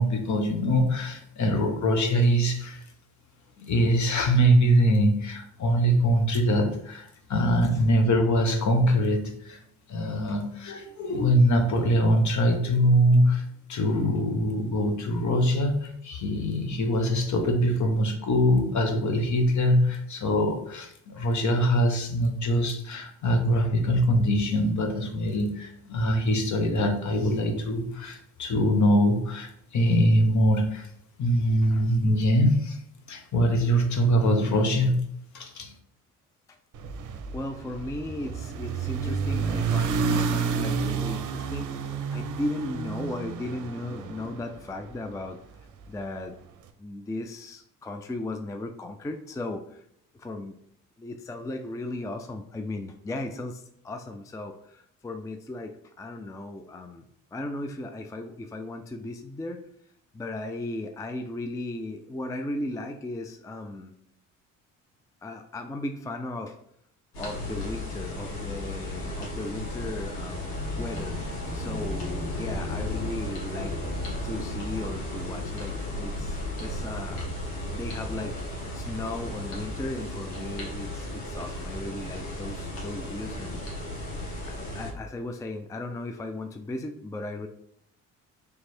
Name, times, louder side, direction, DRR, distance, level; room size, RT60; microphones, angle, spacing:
voice 1, 0.0-2.8 3.6-9.6 9.9-13.4 13.7-30.9 31.2-32.8 33.1-35.0 35.3-35.7, equal, 50° left, 4 dB, 1.1 m, -23 dB
sound 1, 36.7-45.1, right 5 dB, 55° right, 0.6 m, -30 dB
voice 2, 37.3-45.4 45.9-46.3 46.8-49.8 50.1-50.6 51.0-57.1 57.3-59.6 60.1-63.9 65.2-66.6 67.2-73.8 74.2-77.3 77.7-78.3 78.7-83.6 84.5-87.5, left 2 dB, 10° left, 6 dB, 0.4 m, -36 dB
sound 2, 67.1-84.9, left 1 dB, 80° left, 1.5 m, -34 dB
3.4 x 3.1 x 4.3 m, 0.70 s
supercardioid pair, 60°, 36 cm